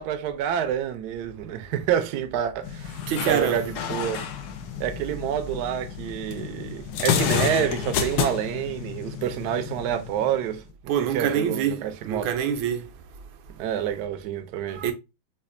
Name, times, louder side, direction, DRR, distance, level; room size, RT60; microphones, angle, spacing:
voice 1, 0.0-3.0 3.3-4.2 4.8-10.6 11.0-12.3 13.6-14.8, right 9 dB, 70° right, 1.0 m, -28 dB
sound 1, 2.6-10.7, left 8 dB, 70° left, 0.9 m, -30 dB
voice 2, 3.1-3.7 10.9-12.9 14.8-14.9, right 8 dB, 85° right, 1.4 m, -26 dB
5.1 x 2.4 x 2.4 m
omnidirectional pair, 2.1 m